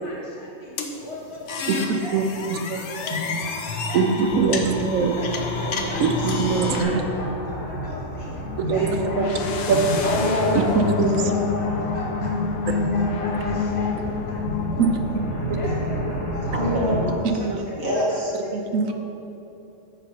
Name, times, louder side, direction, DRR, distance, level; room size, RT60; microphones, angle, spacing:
voice 1, 0.0-2.7 3.0-4.0 4.4-4.6 4.9-10.0 10.6-10.8 11.2-16.7 17.4-17.5 17.8-18.2 18.8-18.9, left 1 dB, 20° left, -7 dB, 1.8 m, -39 dB
sound 1, 0.8-6.8, left 4 dB, 65° left, 1.0 m, -30 dB
voice 2, 2.5-2.8 3.9-5.1 6.0-6.9 8.7-8.9 9.2-9.3 9.7-9.8 10.5-10.6 11.0-11.3 14.8-14.9 17.4-17.6 18.5-18.9, right 5 dB, 75° right, 4 dB, 1.1 m, -22 dB
sound 2, 4.2-17.1, equal, 45° left, 2.1 m, -32 dB
voice 3, 5.4-7.0 8.6-8.7 10.0-11.2 14.5-14.6 16.4-17.2 17.8-18.3, equal, 40° right, -6 dB, 2.0 m, -27 dB
sound 3, 8.4-16.7, left 5 dB, 80° left, 1.1 m, -28 dB
10.5 x 7.3 x 2.8 m, 2.9 s
omnidirectional pair, 1.4 m